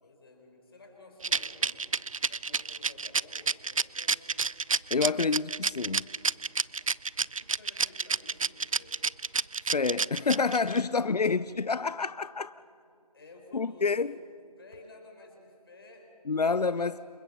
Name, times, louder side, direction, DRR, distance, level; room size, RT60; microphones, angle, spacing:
voice 1, 0.0-2.0 2.3-4.3 7.2-9.1 10.7-11.1 13.1-14.0 14.6-17.1, left 2 dB, 40° left, 4.8 m, -53 dB
Rattle, 1.2-10.8, right 4 dB, 60° right, 0.5 m, -29 dB
voice 2, 4.9-6.1 9.7-12.5 13.5-14.2 16.3-17.0, left 4 dB, 90° left, 0.6 m, -28 dB
28.0 x 22.5 x 5.7 m
figure-of-eight pair, 170°, 20 cm